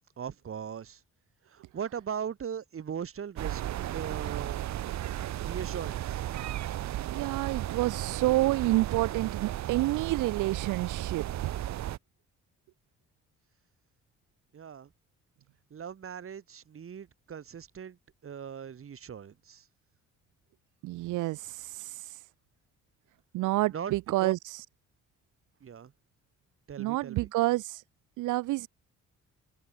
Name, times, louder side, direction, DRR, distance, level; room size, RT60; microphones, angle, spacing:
voice 1, 0.2-1.0 1.5-4.6 5.4-6.2 14.5-14.9 15.7-18.0 18.2-19.7 23.7-23.9 24.2-24.3 25.6-25.9 26.7-27.3, right 8 dB, 45° right, 2.1 m, -39 dB
sound 1, 3.4-12.0, right 13 dB, 65° right, 0.9 m, -35 dB
voice 2, 7.0-11.5 20.8-22.2 23.3-24.6 26.8-27.8 28.2-28.7, right 18 dB, 85° right, 0.7 m, -29 dB
open air
cardioid pair, 90°, 30 cm